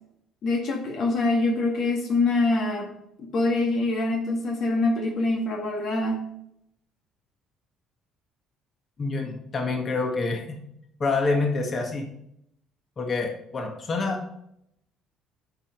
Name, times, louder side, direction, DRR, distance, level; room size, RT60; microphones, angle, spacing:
voice 1, 0.4-2.9 3.3-6.2, left 2 dB, 60° left, 1 dB, 1.8 m, -24 dB
voice 2, 9.0-10.6 11.0-12.1 13.0-14.2, left 3 dB, 40° left, 2 dB, 1.8 m, -27 dB
7.9 x 6.3 x 5.3 m, 0.76 s
supercardioid pair, 80°, 0 cm